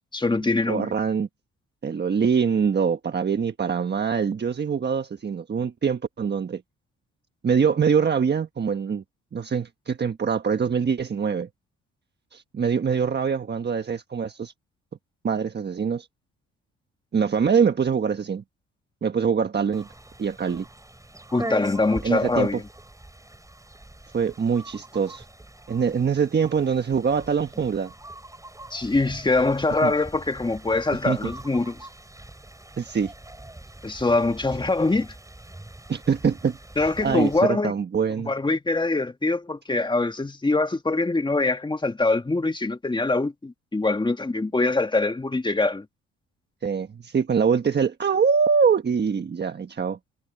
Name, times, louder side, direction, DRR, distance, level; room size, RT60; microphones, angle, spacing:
voice 1, 0.1-0.9 21.3-22.6 28.7-31.9 33.8-35.1 36.8-37.7 38.2-45.8, left 3 dB, 15° left, 1.7 m, -23 dB
voice 2, 0.7-1.3 1.8-6.6 7.4-9.0 9.3-11.5 12.3-14.5 15.2-16.1 17.1-18.4 19.0-19.9 20.2-20.7 22.0-22.6 24.1-25.2 25.7-27.9 29.8-29.9 31.0-31.2 32.8-33.1 35.9-38.3 46.6-50.0, right 6 dB, 35° right, 1.3 m, -24 dB
sound 1, 19.7-37.4, right 1 dB, 10° right, 6.0 m, -42 dB
cardioid pair, 90°, 30 cm